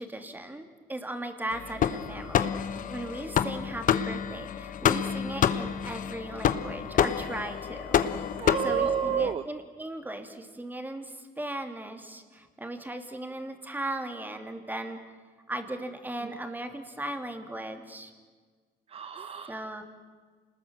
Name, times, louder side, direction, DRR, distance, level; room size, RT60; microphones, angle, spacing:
voice 1, 0.0-8.0 8.6-15.0 15.5-18.1 19.5-19.8, right 1 dB, 10° right, 6 dB, 2.8 m, -37 dB
sound 1, 1.5-9.3, left 9 dB, 50° left, 1.2 m, -28 dB
voice 2, 8.4-9.4 16.2-16.3 18.9-19.7, right 8 dB, 35° right, 11 dB, 0.8 m, -30 dB
28.0 x 20.0 x 7.7 m, 1.5 s
cardioid pair, 110°, 17 cm